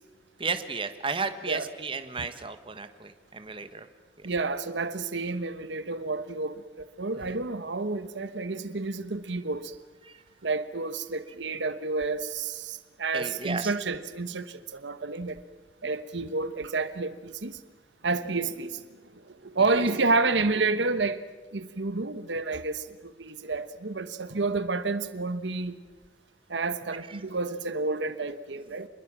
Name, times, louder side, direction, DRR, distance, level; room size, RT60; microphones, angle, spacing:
voice 1, 0.4-3.9 4.2-4.3 7.2-7.3 10.0-10.2 13.1-13.7 19.7-19.8 27.1-27.2, right 4 dB, 30° right, 1.3 m, -34 dB
voice 2, 4.2-9.7 10.4-15.4 15.8-17.6 18.0-18.8 19.2-21.2 21.5-25.8 26.5-28.9, right 3 dB, 80° right, 1.1 m, -30 dB
27.0 x 21.5 x 7.5 m
head